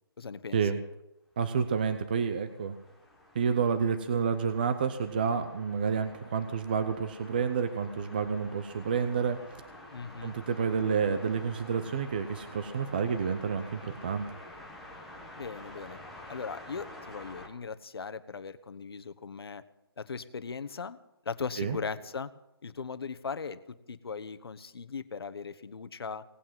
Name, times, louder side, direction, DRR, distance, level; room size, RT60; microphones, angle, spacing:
voice 1, 0.2-0.6 9.9-10.4 15.4-16.0 16.3-19.6 20.0-21.0 21.2-22.3 22.6-23.6 23.9-26.2, left 5 dB, 70° left, 11 dB, 1.2 m, -38 dB
voice 2, 1.4-2.8 3.3-9.4 10.2-14.3 21.6-21.8, right 6 dB, 20° right, 9 dB, 0.6 m, -29 dB
sound 1, 1.7-17.5, left 1 dB, ahead, 1.0 m, -49 dB
18.5 x 8.6 x 7.5 m, 0.89 s
hypercardioid pair, 175°, 13 cm